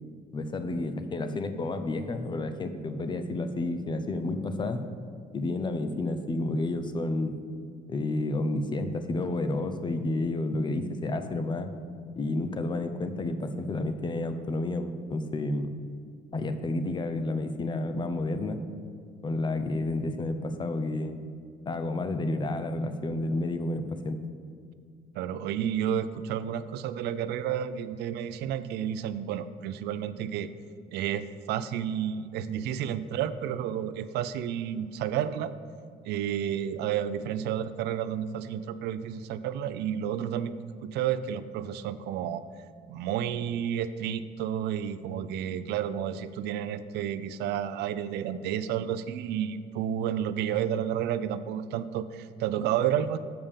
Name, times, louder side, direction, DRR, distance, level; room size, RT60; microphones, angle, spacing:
voice 1, 0.3-4.8 5.3-7.4 7.9-11.7 12.2-15.7 16.3-18.6 19.2-21.2 21.7-24.2, left 2 dB, 25° left, 9 dB, 0.7 m, -30 dB
voice 2, 25.2-30.5 30.9-35.5 36.0-40.5 40.8-42.4 42.9-53.2, right 9 dB, 80° right, 13 dB, 0.4 m, -31 dB
6.8 x 5.2 x 7.2 m, 2.2 s
cardioid pair, 110°, 17 cm